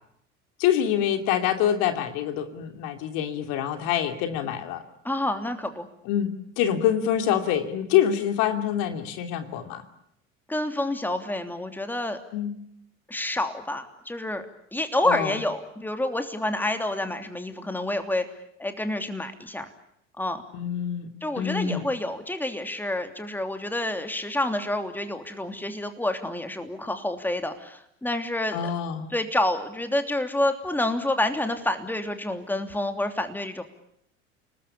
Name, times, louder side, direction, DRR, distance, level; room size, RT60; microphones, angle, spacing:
voice 1, 0.6-4.8 6.0-9.8 12.3-12.5 15.0-15.4 20.5-21.1 21.4-21.8 28.5-29.1, left 10 dB, 60° left, 7 dB, 2.9 m, -25 dB
voice 2, 5.0-5.9 10.5-12.2 13.1-14.4 14.7-18.2 18.6-19.7 20.2-20.4 21.2-28.6 29.1-33.6, left 1 dB, 5° left, 7 dB, 3.1 m, -28 dB
30.0 x 20.0 x 8.7 m, 0.76 s
hypercardioid pair, 70°, 36 cm